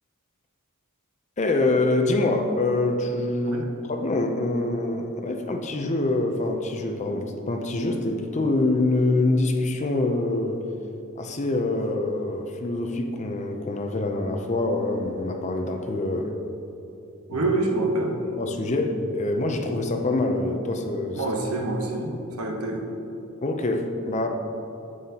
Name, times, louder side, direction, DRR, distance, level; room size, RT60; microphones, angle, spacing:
voice 1, 1.4-10.7 11.2-16.3 17.3-17.4 18.4-21.2 23.4-24.3, left 2 dB, 30° left, 4 dB, 0.5 m, -25 dB
voice 2, 17.3-18.2 21.2-22.8, right 2 dB, 75° right, 2 dB, 1.0 m, -26 dB
9.2 x 7.7 x 2.9 m, 2.9 s
head